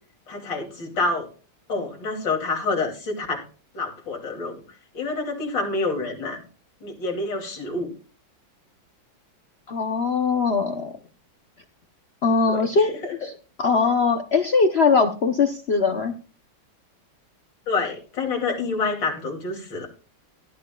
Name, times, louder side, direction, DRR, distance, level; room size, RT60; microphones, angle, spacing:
voice 1, 0.3-1.3 1.7-3.4 3.7-4.6 4.9-6.4 6.8-7.9 12.5-13.1 17.7-19.9, left 3 dB, 60° left, 1 dB, 3.3 m, -27 dB
voice 2, 9.7-10.9 12.2-12.9 13.2-13.3 13.6-16.1, left 4 dB, 80° left, 7 dB, 0.5 m, -21 dB
17.0 x 11.5 x 2.3 m, 0.35 s
omnidirectional pair, 2.2 m